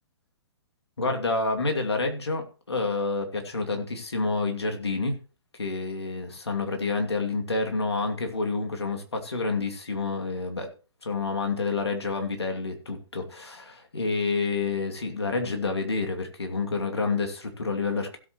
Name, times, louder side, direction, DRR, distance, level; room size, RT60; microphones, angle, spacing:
voice 1, 1.0-5.2 5.6-10.7 11.0-18.2, left 3 dB, 75° left, 4 dB, 2.6 m, -28 dB
16.5 x 8.1 x 3.1 m, 0.34 s
figure-of-eight pair, 125°, 14 cm